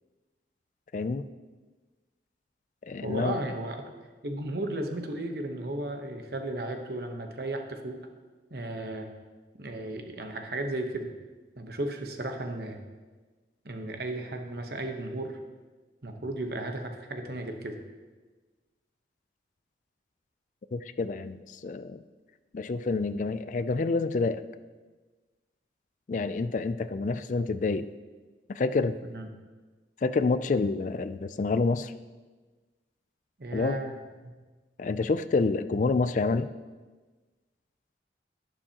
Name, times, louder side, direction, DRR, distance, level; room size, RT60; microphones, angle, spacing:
voice 1, 0.9-1.3 2.8-3.4 20.7-22.0 22.5-24.4 26.1-27.9 28.5-29.0 30.0-31.9 33.5-33.8 34.8-36.5, left 3 dB, 45° left, 12 dB, 0.3 m, -28 dB
voice 2, 3.0-3.9 4.2-8.0 8.5-9.1 9.6-11.1 11.6-12.8 13.6-15.4 16.0-17.8 29.0-29.3 33.4-34.0 34.2-34.3, right 1 dB, 55° right, 5 dB, 1.0 m, -34 dB
11.5 x 9.8 x 2.9 m, 1.3 s
head